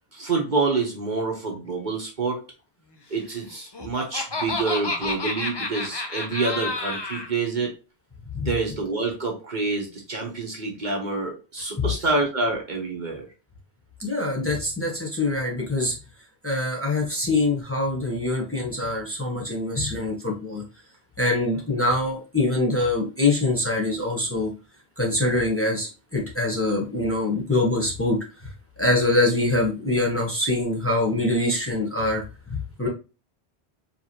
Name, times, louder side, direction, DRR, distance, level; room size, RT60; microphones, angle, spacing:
voice 1, 0.1-2.4 3.1-7.7 8.4-13.2, right 3 dB, 45° right, 0 dB, 1.1 m, -27 dB
Laughter, 3.5-7.3, left 2 dB, 30° left, 0.5 m, -30 dB
voice 2, 14.0-16.0 16.4-20.6 21.2-24.5 25.0-28.5 28.8-32.9, left 2 dB, 15° left, -2 dB, 1.1 m, -24 dB
4.8 x 3.3 x 2.9 m, 0.32 s
omnidirectional pair, 1.1 m